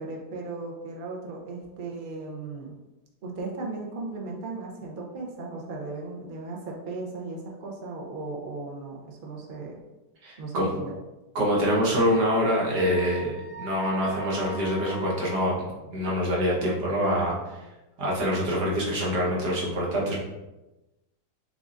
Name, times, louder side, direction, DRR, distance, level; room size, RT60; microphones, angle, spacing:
voice 1, 0.0-2.7 3.2-9.8 10.4-10.9, right 3 dB, 50° right, -1 dB, 0.6 m, -36 dB
voice 2, 10.2-10.7 11.4-13.3 13.6-15.6 15.9-17.6 18.0-20.2, equal, 85° right, -4 dB, 1.8 m, -25 dB
Wind instrument woodwind instrument, 12.1-15.5, left 1 dB, 55° left, 0.8 m, -42 dB
7.0 x 2.5 x 2.5 m, 1.0 s
omnidirectional pair, 1.8 m